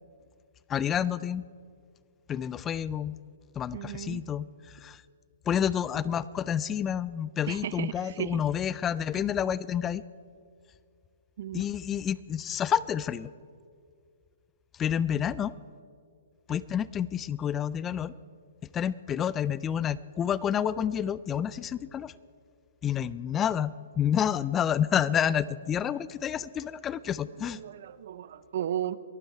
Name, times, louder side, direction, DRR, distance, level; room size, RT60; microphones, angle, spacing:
voice 1, 0.7-1.4 2.3-3.2 3.6-5.0 5.5-10.0 11.5-13.3 14.8-15.5 16.5-18.1 18.7-22.1 22.8-27.6, left 9 dB, 20° left, 19 dB, 0.3 m, -29 dB
voice 2, 3.7-4.2 7.5-7.9 8.2-8.4 11.4-11.6 27.5-29.0, right 11 dB, 60° right, 16 dB, 0.6 m, -34 dB
23.0 x 9.1 x 4.6 m, 2.2 s
hypercardioid pair, 135°, 0 cm